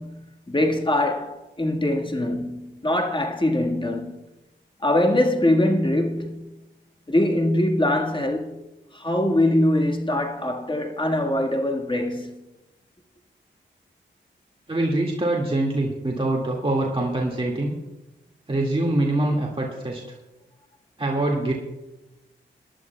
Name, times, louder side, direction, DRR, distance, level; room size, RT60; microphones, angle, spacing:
voice 1, 0.0-4.2 4.8-6.6 7.1-8.6 8.9-12.4, left 1 dB, 25° left, 1.7 m, -23 dB
voice 2, 14.7-17.7 18.5-20.0 21.0-21.5, right 2 dB, 25° right, 2.1 m, -24 dB
21.5 x 11.5 x 2.3 m
cardioid pair, 45°, 20 cm